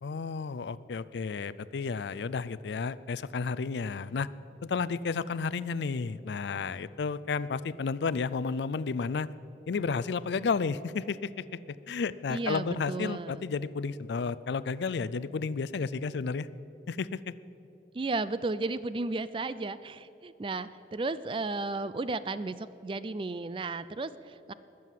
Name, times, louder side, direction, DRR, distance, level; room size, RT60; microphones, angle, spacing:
voice 1, 0.0-4.3 4.6-9.3 9.7-11.6 11.9-16.5 16.9-17.3, left 5 dB, 75° left, 17 dB, 0.4 m, -32 dB
voice 2, 12.3-13.5 17.9-24.5, right 3 dB, 30° right, 15 dB, 0.4 m, -34 dB
20.5 x 7.7 x 7.4 m, 3.0 s
head